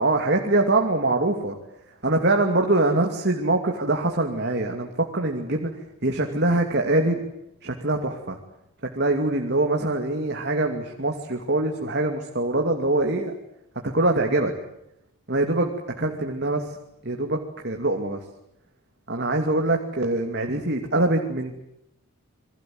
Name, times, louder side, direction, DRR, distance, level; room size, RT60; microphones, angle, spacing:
voice 1, 0.0-1.6 2.0-5.7 6.0-7.2 7.6-8.4 8.9-13.3 13.9-14.5 15.3-15.7 16.0-16.7 17.0-17.4 17.6-18.2 19.1-21.6, right 2 dB, 50° right, 3 dB, 2.7 m, -23 dB
28.0 x 22.5 x 7.9 m, 0.83 s
head